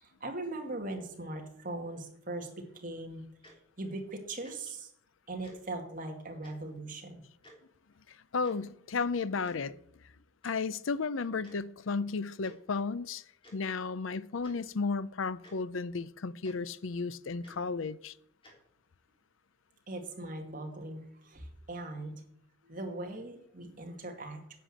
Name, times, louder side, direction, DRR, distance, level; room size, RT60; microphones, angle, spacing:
voice 1, 0.0-3.2 3.8-4.9 5.3-7.2 19.9-22.2 22.6-24.4, right 2 dB, 45° right, 2.3 m, -40 dB
Tick-tock, 3.4-3.5 4.4-4.5 5.4-5.5 6.4-6.6 7.4-7.5 8.4-8.5 9.4-9.6 10.4-10.5 11.4-11.5 12.4-12.5 13.4-13.5 14.4-14.6 15.4-15.5 16.4-16.5 17.4-17.6 18.4-18.5, equal, 25° left, 3.4 m, -54 dB
voice 2, 8.1-9.8 10.4-13.2 13.5-18.1, left 4 dB, 90° left, 0.6 m, -33 dB
10.0 x 8.2 x 7.7 m
head